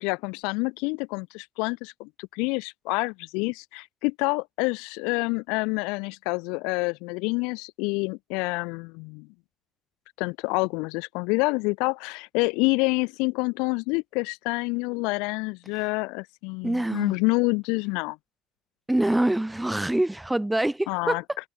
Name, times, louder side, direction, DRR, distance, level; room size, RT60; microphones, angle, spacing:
voice 1, 0.0-9.3 10.2-18.2 20.9-21.2, left 29 dB, 85° left, 4.7 m, -27 dB
voice 2, 16.6-17.2 18.9-21.4, right 1 dB, 5° right, 6.1 m, -25 dB
cardioid pair, 140°, 0 cm